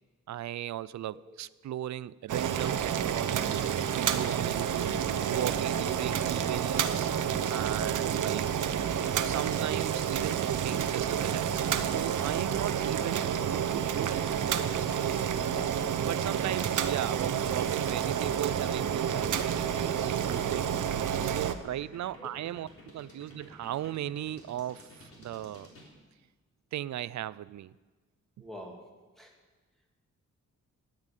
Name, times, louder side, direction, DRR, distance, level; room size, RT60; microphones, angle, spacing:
voice 1, 0.3-3.6 3.9-4.9 5.3-7.1 7.5-8.5 9.2-14.2 14.8-15.5 16.1-20.7 21.2-25.7 26.7-27.7, right 12 dB, 65° right, 0.4 m, -37 dB
Boiling, 2.3-21.5, right 8 dB, 85° right, 0.9 m, -29 dB
sound 1, 11.4-25.9, left 1 dB, 45° left, 3.7 m, -52 dB
voice 2, 28.4-28.8 29.2-29.3, left 1 dB, ahead, 2.4 m, -46 dB
13.5 x 10.5 x 9.0 m
wide cardioid pair, 170°, 30 cm